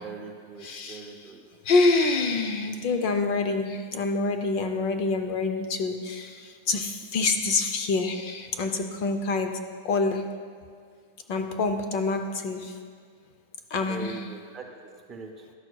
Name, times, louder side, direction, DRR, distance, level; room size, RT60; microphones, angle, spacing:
voice 1, 0.0-1.4 13.9-15.4, right 4 dB, 15° right, 2 dB, 0.6 m, -41 dB
voice 2, 0.6-1.3 1.6-10.3 11.3-12.8 13.7-14.3, left 3 dB, 35° left, 6 dB, 0.5 m, -26 dB
13.0 x 6.2 x 2.3 m, 2.1 s
supercardioid pair, 180°, 0 cm